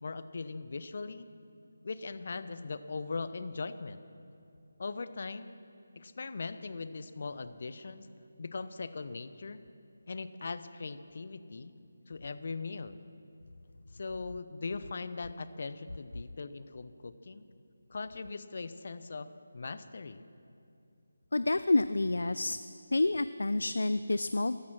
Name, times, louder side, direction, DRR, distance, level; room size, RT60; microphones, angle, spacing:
voice 1, 0.0-1.3 1.8-4.0 4.8-5.6 6.0-8.1 8.4-9.6 10.1-11.7 12.1-13.0 13.9-17.4 17.9-20.2, left 4 dB, 50° left, 13 dB, 0.7 m, -40 dB
voice 2, 21.3-22.6 22.9-24.6, left 2 dB, 70° left, 14 dB, 0.4 m, -28 dB
14.0 x 13.5 x 6.1 m, 2.5 s
figure-of-eight pair, 160°, 0 cm